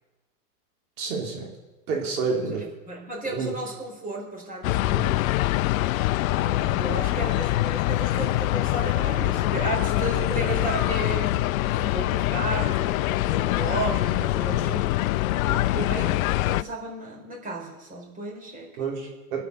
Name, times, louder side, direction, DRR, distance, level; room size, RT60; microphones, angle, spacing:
voice 1, 1.0-1.5 1.9-2.6 3.3-3.5 4.8-5.1 18.8-19.5, right 4 dB, 70° right, 0 dB, 3.5 m, -29 dB
voice 2, 2.9-5.1 6.3-15.1 15.5-19.0, right 2 dB, 20° right, 0 dB, 4.2 m, -34 dB
sound 1, 4.6-16.6, left 17 dB, 65° left, 0.5 m, -24 dB
24.0 x 8.4 x 6.6 m, 1.1 s
hypercardioid pair, 115°, 45 cm